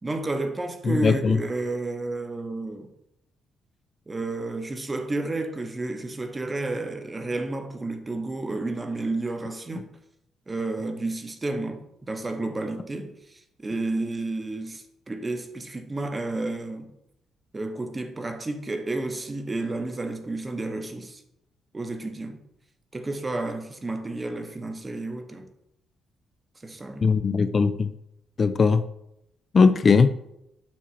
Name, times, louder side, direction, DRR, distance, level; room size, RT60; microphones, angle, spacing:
voice 1, 0.0-2.9 4.1-9.9 10.5-16.9 17.5-21.2 21.7-22.4 22.9-25.5 26.6-27.1, right 2 dB, 25° right, 0.9 m, -31 dB
voice 2, 0.9-1.4 27.0-27.9 28.4-28.8 29.5-30.2, left 5 dB, 40° left, 0.4 m, -19 dB
7.4 x 2.9 x 5.7 m
cardioid pair, 90°, 0 cm